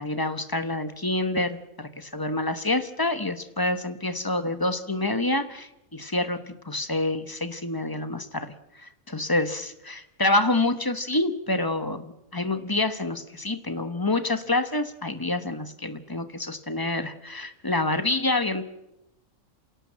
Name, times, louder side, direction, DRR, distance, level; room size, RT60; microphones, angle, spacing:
voice 1, 0.0-18.6, left 2 dB, 20° left, 11 dB, 1.0 m, -27 dB
28.0 x 17.0 x 7.5 m, 0.92 s
omnidirectional pair, 1.4 m